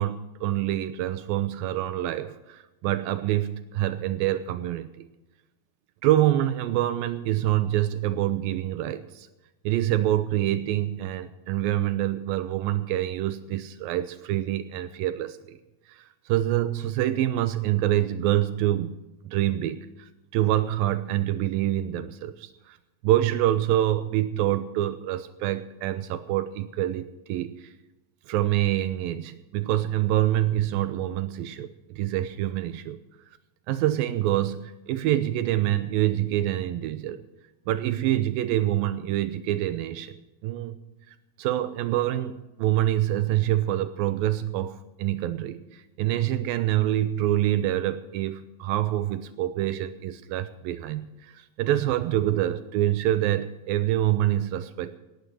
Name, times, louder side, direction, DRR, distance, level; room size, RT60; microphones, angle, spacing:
voice 1, 0.0-4.9 6.0-9.3 9.7-15.6 15.9-19.0 19.2-22.8 23.0-27.7 28.3-33.0 33.7-37.2 37.7-40.2 40.4-40.8 41.1-55.0, right 13 dB, 80° right, 12 dB, 2.3 m, -26 dB
18.0 x 9.9 x 6.4 m, 1.0 s
omnidirectional pair, 4.4 m